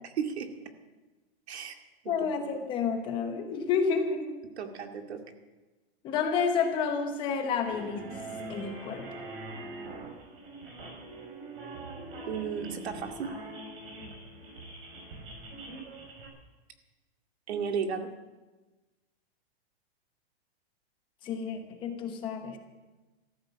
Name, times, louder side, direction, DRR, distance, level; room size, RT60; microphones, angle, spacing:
voice 1, 0.2-0.5 1.5-1.8 2.2-2.3 4.6-5.2 12.3-13.3 17.5-18.1, right 6 dB, 80° right, 5 dB, 2.3 m, -34 dB
voice 2, 2.1-4.4 6.0-9.1 21.2-22.6, left 6 dB, 15° left, 5 dB, 1.0 m, -30 dB
sound 1, 7.6-16.3, right 2 dB, 60° right, 5.2 m, -43 dB
14.5 x 13.5 x 7.0 m, 1.2 s
supercardioid pair, 175°, 32 cm